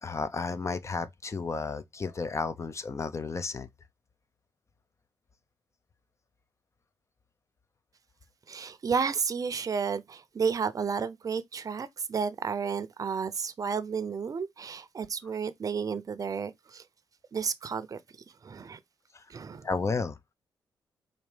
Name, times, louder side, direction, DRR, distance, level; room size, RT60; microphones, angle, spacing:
voice 1, 0.0-3.7 19.1-19.2 19.6-20.2, left 4 dB, 35° left, 0.7 m, -32 dB
voice 2, 8.5-16.8 17.3-18.0 18.4-18.8 19.3-19.7, right 6 dB, 45° right, 0.6 m, -32 dB
4.4 x 2.7 x 3.3 m
cardioid pair, 60°, 8 cm